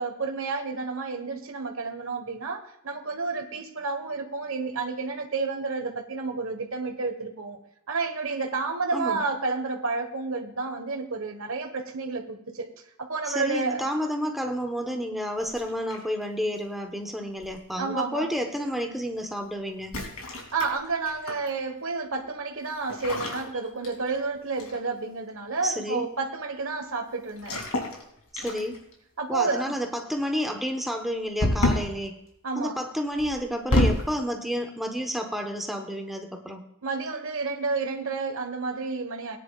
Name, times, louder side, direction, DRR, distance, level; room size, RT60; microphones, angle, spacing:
voice 1, 0.0-7.6 7.9-12.7 13.0-13.8 17.8-18.3 20.5-27.5 29.2-29.8 32.4-32.8 36.8-39.4, right 4 dB, 65° right, 6 dB, 1.4 m, -30 dB
voice 2, 13.2-19.9 25.6-26.1 28.3-28.8 29.3-32.2 32.5-36.6, equal, ahead, 3 dB, 1.1 m, -30 dB
sound 1, 15.5-16.2 17.4-17.7 19.8-21.5 22.9-24.3 24.6-24.9 27.4-28.0 28.4-28.9 31.4-32.0 33.2-34.1, left 1 dB, 85° left, 2.7 m, -28 dB
18.0 x 10.0 x 2.4 m, 0.78 s
head